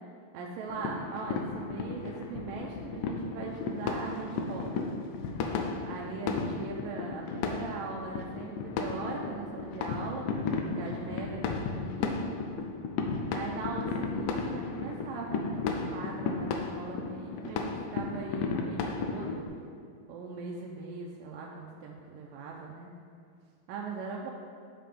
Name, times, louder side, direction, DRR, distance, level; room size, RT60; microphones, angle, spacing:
voice 1, 0.3-4.8 5.8-12.4 13.3-19.5 20.1-22.9 23.7-24.3, right 4 dB, 80° right, -2 dB, 2.2 m, -40 dB
sound 1, 0.7-19.4, left 4 dB, 85° left, 1.9 m, -34 dB
7.6 x 7.4 x 3.4 m, 2.3 s
omnidirectional pair, 4.3 m